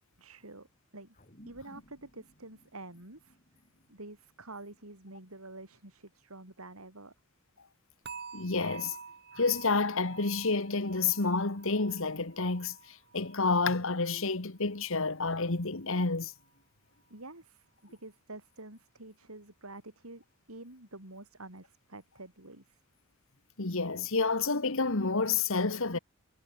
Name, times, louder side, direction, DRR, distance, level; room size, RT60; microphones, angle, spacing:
voice 1, 0.2-0.7 0.9-1.1 1.4-3.4 3.9-7.1 17.1-20.2 20.5-22.8, right 2 dB, 75° right, 6.1 m, -48 dB
sound 1, 1.1-5.9, equal, 40° left, 7.1 m, -60 dB
sound 2, 8.0-15.1 15.4-15.8 16.3-16.4, right 6 dB, 50° right, 3.1 m, -49 dB
voice 2, 8.3-9.0 9.4-16.3 23.6-26.0, left 4 dB, 65° left, 1.6 m, -29 dB
head